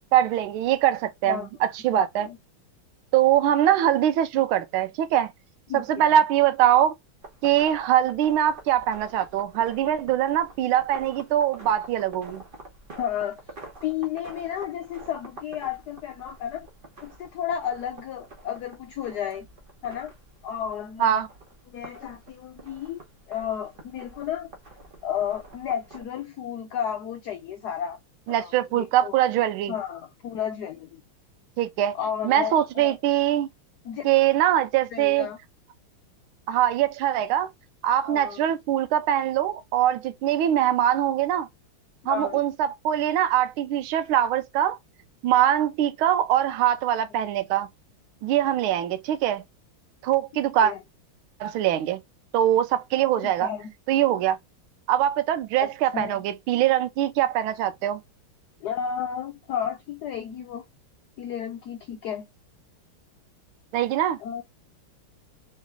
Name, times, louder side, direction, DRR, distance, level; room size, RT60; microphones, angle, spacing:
voice 1, 0.1-2.3 3.1-5.3 5.7-6.9 7.4-12.4 21.0-21.3 28.3-29.7 31.6-32.0 32.2-33.5 34.0-35.3 36.5-37.5 37.8-41.5 42.1-44.8 45.2-47.7 48.2-49.4 50.0-50.7 51.4-52.0 52.3-53.5 53.9-54.4 54.9-58.0 63.7-64.2, right 11 dB, 80° right, 1.4 m, -22 dB
voice 2, 1.9-2.4 5.7-6.1 13.0-13.4 13.8-16.7 17.0-19.5 19.8-20.1 20.4-21.3 21.7-24.5 25.0-28.0 28.3-29.2 29.7-31.0 31.9-33.0 33.8-34.1 34.9-35.4 38.1-38.4 42.0-42.4 50.6-50.8 53.2-53.7 55.6-56.2 58.6-60.6 61.2-62.3 64.2-64.4, left 9 dB, 80° left, 0.9 m, -32 dB
sound 1, 7.2-26.0, right 2 dB, 35° right, 0.9 m, -47 dB
3.7 x 3.2 x 3.4 m
omnidirectional pair, 2.3 m